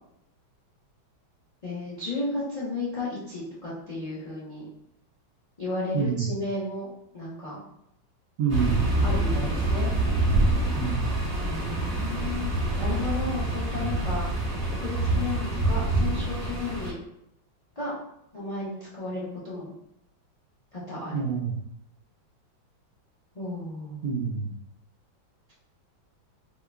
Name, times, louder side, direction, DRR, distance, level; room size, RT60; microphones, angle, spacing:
voice 1, 1.6-4.7 5.6-7.6 9.0-9.9 11.4-14.5 14.8-16.9 17.8-17.9 18.3-19.7 20.7-21.3 23.3-24.0, left 2 dB, 90° left, -8 dB, 0.3 m, -33 dB
voice 2, 5.9-6.3 8.4-8.8 10.8-11.2 16.1-16.2 21.1-21.6 24.0-24.5, right 6 dB, 70° right, 1 dB, 1.2 m, -27 dB
sound 1, 8.5-16.9, right 2 dB, 35° right, 1.2 m, -26 dB
3.6 x 2.1 x 3.4 m, 0.78 s
omnidirectional pair, 2.1 m